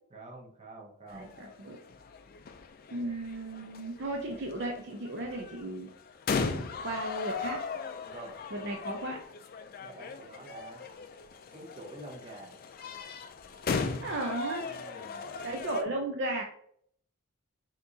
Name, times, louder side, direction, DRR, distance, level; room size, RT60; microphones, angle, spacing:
voice 1, 0.1-1.4 8.1-8.4 9.8-10.9 11.5-12.6 14.6-15.4, right 1 dB, 30° right, 0 dB, 1.1 m, -47 dB
sound 1, 1.1-15.8, left 4 dB, 45° left, 0.4 m, -38 dB
voice 2, 1.1-1.8 2.9-5.9 6.4-7.6 8.5-9.2 14.0-14.7 15.4-16.4, right 1 dB, 55° right, 1 dB, 0.6 m, -35 dB
5.8 x 3.0 x 2.7 m, 0.64 s
head